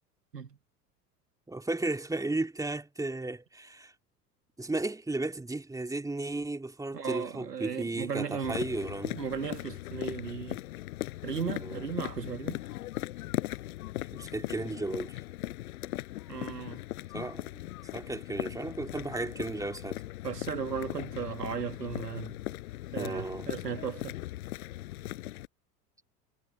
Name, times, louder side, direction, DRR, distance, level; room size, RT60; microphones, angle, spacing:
voice 1, 1.5-3.9 4.6-9.2 11.5-11.9 14.1-15.2 17.1-17.6 17.9-20.0 22.9-23.5, right 2 dB, 5° right, 2.1 m, -34 dB
voice 2, 6.9-8.6 9.2-10.6 11.2-12.6 16.3-16.8 20.2-22.4 22.9-24.2, right 6 dB, 85° right, 1.9 m, -36 dB
sound 1, 8.4-25.5, left 16 dB, 65° left, 5.2 m, -39 dB
figure-of-eight pair, 75°, 48 cm